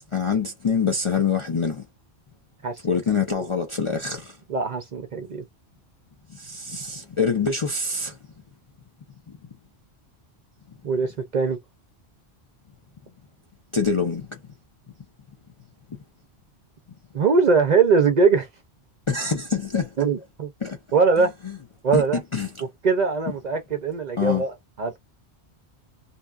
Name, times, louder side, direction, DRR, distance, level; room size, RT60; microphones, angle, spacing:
voice 1, 0.1-1.8 2.8-4.4 6.3-8.2 9.3-9.4 13.7-14.4 19.1-19.9 20.6-20.8 21.2-21.3 21.9-22.5 24.2-24.4, left 5 dB, 40° left, 0.4 m, -25 dB
voice 2, 2.6-3.0 4.5-5.4 10.8-11.6 17.1-18.5 20.0-20.5 20.9-21.3 21.8-22.2 22.8-25.0, right 4 dB, 55° right, 0.5 m, -21 dB
2.7 x 2.2 x 2.3 m
omnidirectional pair, 1.1 m